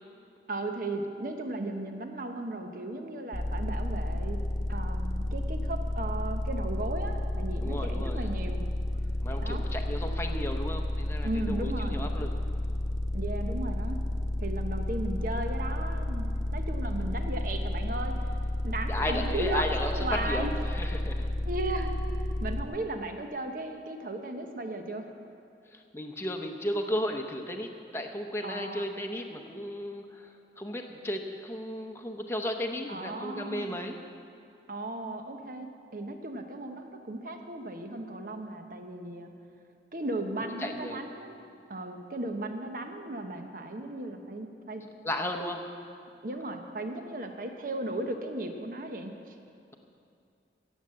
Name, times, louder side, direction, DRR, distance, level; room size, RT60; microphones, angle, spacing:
voice 1, 0.5-4.4 4.7-8.6 9.4-9.6 11.2-12.1 13.1-14.0 14.4-18.2 18.6-20.5 21.5-21.9 22.4-25.1 28.4-28.9 32.9-33.8 34.7-39.3 39.9-41.4 41.7-44.8 46.2-49.4, right 1 dB, 50° right, 5 dB, 1.0 m, -36 dB
sound 1, 3.3-22.6, left 1 dB, 45° left, 0.8 m, -31 dB
voice 2, 7.6-8.3 9.2-12.3 18.9-19.9 20.2-21.3 25.7-34.0 40.6-41.0 45.0-45.6, left 1 dB, 15° left, 3 dB, 0.8 m, -34 dB
16.0 x 7.3 x 7.6 m, 2.5 s
head